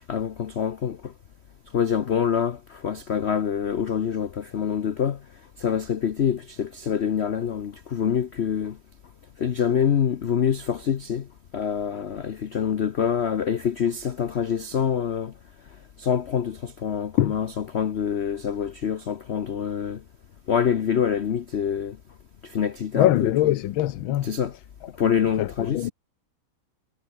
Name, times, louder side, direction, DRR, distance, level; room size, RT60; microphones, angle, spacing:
voice 1, 0.1-1.1 1.7-5.2 5.6-8.8 9.4-11.3 11.5-15.3 16.0-20.0 20.5-22.0 22.4-23.3 24.2-24.5 25.0-25.9, left 8 dB, 65° left, 0.6 m, -25 dB
voice 2, 22.9-24.3 25.4-25.9, left 13 dB, 80° left, 1.6 m, -22 dB
omnidirectional pair, 2.2 m